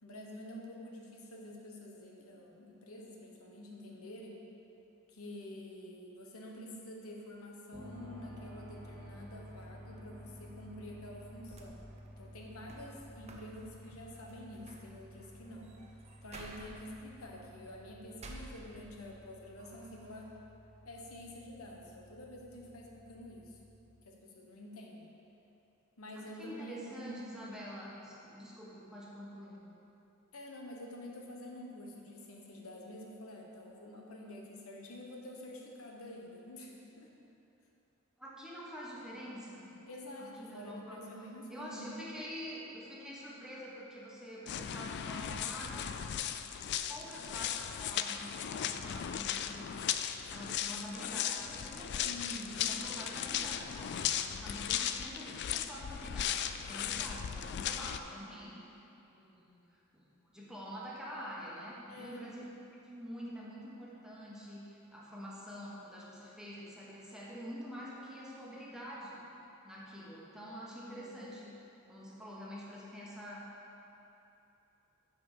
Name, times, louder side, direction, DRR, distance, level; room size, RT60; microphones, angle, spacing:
voice 1, 0.0-4.4 5.1-11.8 12.2-15.7 16.2-20.3 20.8-23.6 24.0-25.1 26.0-27.1 30.3-37.1 39.8-42.0 52.0-52.8 61.9-62.2 70.9-71.3, left 1 dB, 75° left, -1 dB, 1.2 m, -48 dB
sound 1, 7.7-23.8, equal, 20° left, 2.0 m, -53 dB
sound 2, 11.5-19.2 19.6-20.4, right 2 dB, 30° right, 0.7 m, -54 dB
voice 2, 26.1-29.6 38.2-39.7 40.2-41.0 41.5-45.9 46.9-50.0 50.3-58.8 59.1-62.4 62.7-69.2 69.6-71.6 71.9-73.5, equal, 5° right, -6 dB, 1.4 m, -46 dB
sound 3, 44.5-58.0, left 9 dB, 55° left, 0.3 m, -37 dB
9.4 x 4.9 x 6.7 m, 2.9 s
head